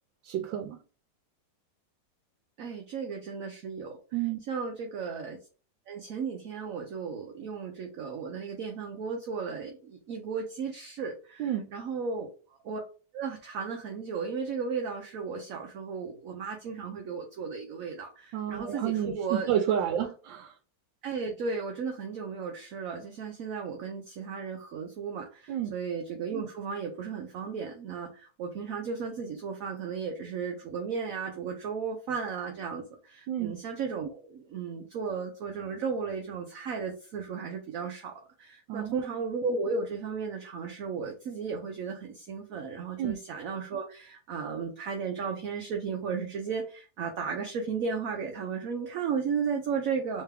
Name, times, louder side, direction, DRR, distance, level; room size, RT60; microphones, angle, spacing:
voice 1, 0.2-0.8 4.1-4.4 11.4-11.7 18.3-20.6 25.5-25.7 33.3-33.5 38.7-39.1 43.0-43.1, right 10 dB, 90° right, 1.3 m, -30 dB
voice 2, 2.6-4.0 4.5-5.4 5.9-11.4 11.7-12.3 12.6-12.8 13.1-19.5 19.9-20.0 21.0-50.2, right 5 dB, 65° right, 0.9 m, -35 dB
3.4 x 3.3 x 3.3 m
omnidirectional pair, 2.0 m